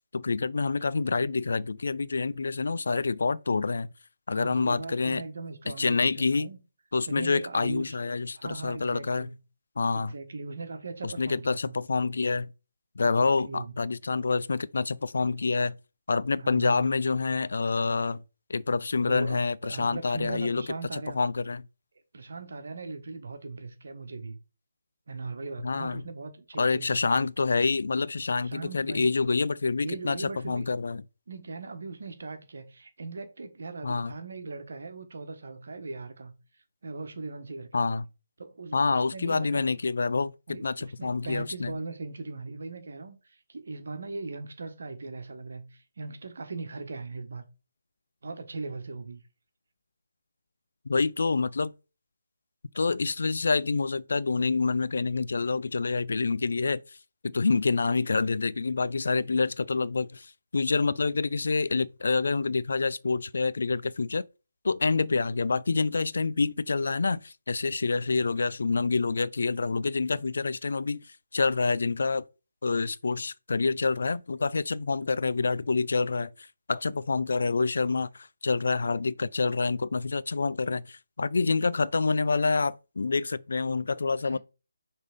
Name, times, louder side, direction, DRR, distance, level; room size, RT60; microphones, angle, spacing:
voice 1, 0.1-3.9 4.3-5.2 5.7-6.5 6.9-9.3 9.8-10.1 11.0-12.5 13.0-15.8 16.1-18.2 18.5-20.6 20.9-21.7 25.6-26.0 26.6-31.0 33.8-34.1 37.7-38.1 38.7-41.7 50.9-51.7 52.7-56.8 57.2-64.2 64.6-71.0 71.3-72.2 72.6-84.4, left 4 dB, 60° left, 0.4 m, -27 dB
voice 2, 4.3-6.6 7.0-8.0 8.4-9.3 9.9-11.8 13.0-13.7 16.4-16.9 19.0-19.4 19.6-21.2 22.1-24.4 25.1-27.3 28.4-29.1 29.8-30.6 31.3-36.3 36.8-37.8 38.4-39.7 40.5-47.4 48.2-49.2 84.3-84.4, right 3 dB, 55° right, 1.4 m, -39 dB
6.3 x 3.6 x 5.1 m
figure-of-eight pair, 150°, 0 cm